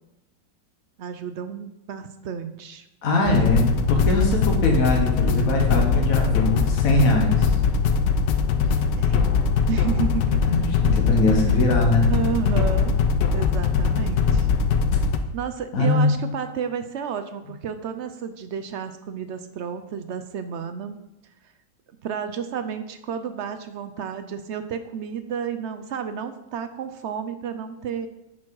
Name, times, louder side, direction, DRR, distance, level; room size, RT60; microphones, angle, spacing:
voice 1, 1.0-2.8 8.7-9.3 9.7-10.4 11.2-11.8 12.1-13.0 13.3-14.5 15.3-21.0 22.0-28.1, right 7 dB, 70° right, 10 dB, 0.6 m, -31 dB
voice 2, 3.0-7.5 10.5-12.1 15.7-16.2, left 2 dB, 55° left, 1 dB, 1.8 m, -21 dB
sound 1, 3.3-15.2, left 5 dB, 85° left, 1.4 m, -21 dB
10.5 x 6.1 x 4.7 m, 0.93 s
omnidirectional pair, 1.9 m